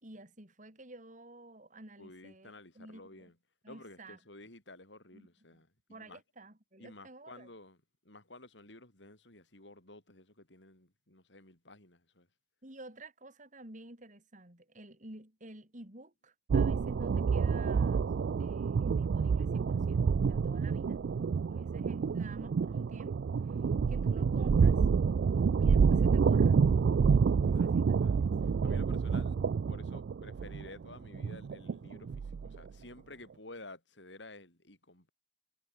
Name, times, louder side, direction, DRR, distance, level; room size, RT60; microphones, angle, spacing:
voice 1, 0.0-3.3 3.6-4.2 5.1-5.6 5.9-7.5 12.6-18.1 18.4-23.6 23.9-24.8 25.6-26.6 27.4-28.3 28.6-28.8, right 2 dB, 45° right, 5.2 m, -51 dB
voice 2, 2.0-3.4 3.7-6.2 6.8-7.8 8.0-12.3 27.4-29.4 29.7-35.1, left 2 dB, 85° left, 7.6 m, -53 dB
sound 1, 16.5-32.7, right 5 dB, 70° right, 0.4 m, -28 dB
head